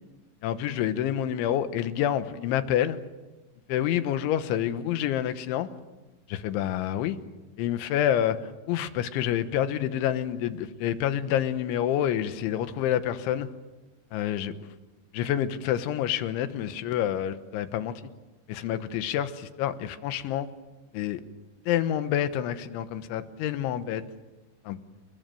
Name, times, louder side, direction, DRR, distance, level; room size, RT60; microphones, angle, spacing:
voice 1, 0.4-3.0 3.7-5.7 6.3-7.2 7.6-13.5 14.1-14.6 15.1-17.9 18.5-20.5 20.9-21.2 21.7-24.0 24.7-24.8, left 10 dB, 85° left, 11 dB, 3.6 m, -28 dB
29.5 x 20.0 x 7.7 m, 1.1 s
omnidirectional pair, 5.3 m